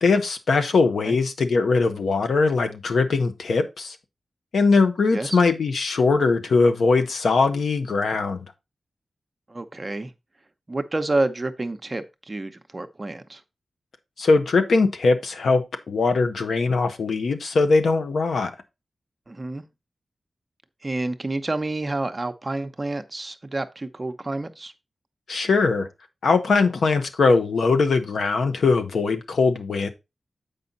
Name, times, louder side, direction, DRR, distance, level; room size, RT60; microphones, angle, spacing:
voice 1, 0.0-3.9 4.5-8.5 14.2-18.5 25.3-25.9 26.2-29.9, left 4 dB, 85° left, 1.0 m, -21 dB
voice 2, 9.5-10.1 10.7-13.4 19.3-19.6 20.8-24.7, right 2 dB, 30° right, 0.7 m, -29 dB
7.5 x 5.2 x 3.9 m
wide cardioid pair, 80°, 0 cm